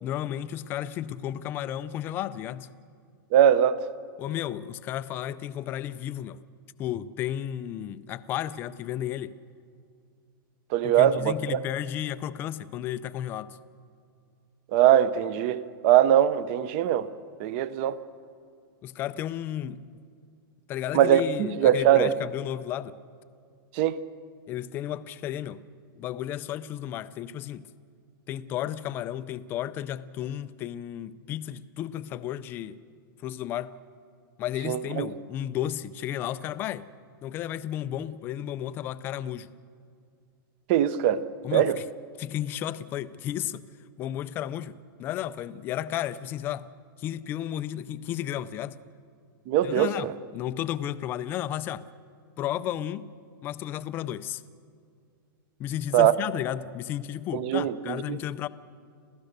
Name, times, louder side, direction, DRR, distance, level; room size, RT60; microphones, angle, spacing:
voice 1, 0.0-2.7 4.2-6.4 6.8-9.3 10.8-13.6 18.8-19.8 20.7-23.0 24.5-25.6 26.0-27.6 28.3-32.8 33.2-33.7 34.4-36.9 37.2-39.5 41.4-41.8 42.2-43.6 44.0-46.7 47.0-48.8 49.6-51.9 52.4-53.1 53.4-54.4 55.6-58.5, left 11 dB, 15° left, 0.4 m, -33 dB
voice 2, 3.3-3.8 10.7-11.6 14.7-17.1 17.4-18.0 20.9-22.1 23.7-24.0 34.6-35.1 40.7-41.2 41.5-41.8 49.5-50.1 55.9-56.1 57.3-58.2, right 11 dB, 30° right, 0.7 m, -22 dB
27.5 x 16.0 x 6.7 m
supercardioid pair, 170°, 12 cm